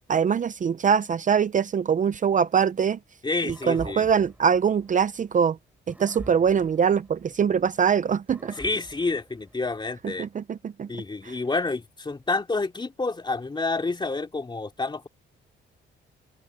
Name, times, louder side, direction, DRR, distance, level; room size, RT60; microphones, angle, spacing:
voice 1, 0.1-3.0 3.5-5.6 5.9-8.5 10.0-10.9 11.2-11.3, right 7 dB, 40° right, 0.7 m, -23 dB
voice 2, 3.2-4.1 8.5-10.3 10.9-15.1, left 3 dB, 25° left, 2.8 m, -29 dB
sound 1, 3.5-5.4 5.9-7.8 8.3-10.0, right 1 dB, 5° right, 6.9 m, -46 dB
cardioid pair, 90°, 20 cm